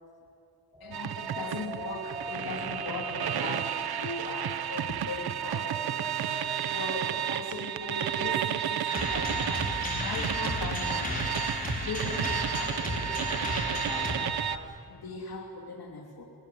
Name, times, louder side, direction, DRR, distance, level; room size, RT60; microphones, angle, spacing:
Spooky Wind, 0.7-7.3, right 1 dB, 10° right, 1.9 m, -44 dB
voice 1, 0.8-11.3 11.8-16.2, left 3 dB, 75° left, 1 dB, 3.2 m, -39 dB
sound 1, 0.9-14.6, right 10 dB, 80° right, 0.9 m, -32 dB
rock music, 8.9-14.1, left 1 dB, 20° left, 5.3 m, -33 dB
28.0 x 20.5 x 9.4 m, 2.7 s
wide cardioid pair, 140°, 37 cm